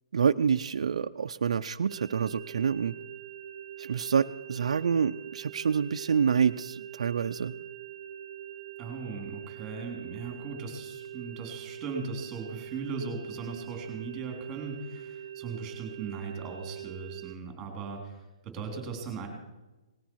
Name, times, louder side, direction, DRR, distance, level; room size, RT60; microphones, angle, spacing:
voice 1, 0.1-2.9 3.8-7.5, right 7 dB, 75° right, 6 dB, 0.5 m, -27 dB
sound 1, 1.9-17.3, right 10 dB, 30° right, 1.3 m, -43 dB
voice 2, 8.8-19.3, right 4 dB, 10° right, 2 dB, 3.3 m, -38 dB
18.5 x 14.5 x 4.7 m, 1.1 s
hypercardioid pair, 170°, 3 cm